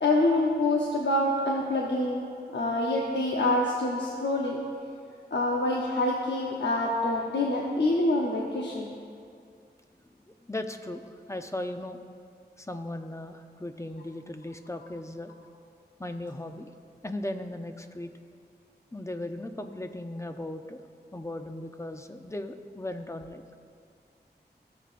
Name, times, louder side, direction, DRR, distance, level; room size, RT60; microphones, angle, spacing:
voice 1, 0.0-2.3 2.5-4.6 5.3-8.9, left 2 dB, 85° left, -2 dB, 0.8 m, -26 dB
voice 2, 10.3-11.0 11.3-12.0 12.6-15.3 16.0-16.7 17.0-18.1 18.9-20.8 21.1-23.4, left 1 dB, 15° left, 7 dB, 0.6 m, -37 dB
17.5 x 6.8 x 2.5 m, 2.3 s
wide cardioid pair, 45°, 18 cm